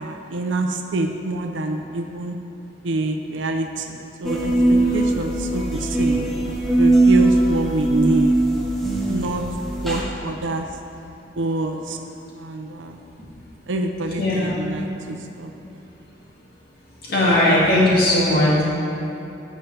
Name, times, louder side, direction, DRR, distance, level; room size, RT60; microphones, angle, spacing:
voice 1, 0.0-2.4 2.8-6.3 6.8-8.4 9.1-9.4 9.8-10.7 11.4-12.0 12.3-13.0 13.7-15.8, right 2 dB, 90° right, 4 dB, 0.6 m, -26 dB
sound 1, 4.2-10.0, right 2 dB, ahead, 1.1 m, -20 dB
voice 2, 14.2-14.5 17.1-18.6, left 1 dB, 55° left, -7 dB, 2.3 m, -17 dB
12.5 x 7.3 x 3.4 m, 2.9 s
head